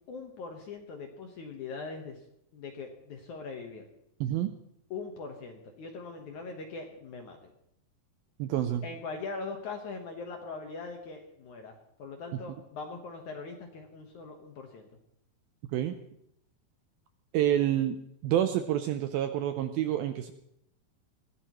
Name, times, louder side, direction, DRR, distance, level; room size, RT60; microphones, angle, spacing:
voice 1, 0.1-2.2 2.5-3.9 4.9-7.5 8.8-14.9, left 4 dB, 60° left, 3 dB, 2.1 m, -41 dB
voice 2, 4.2-4.5 8.4-8.9 15.7-16.0 17.3-18.0 18.2-20.3, right 11 dB, 80° right, 8 dB, 2.2 m, -28 dB
22.0 x 16.5 x 3.1 m, 0.78 s
omnidirectional pair, 4.9 m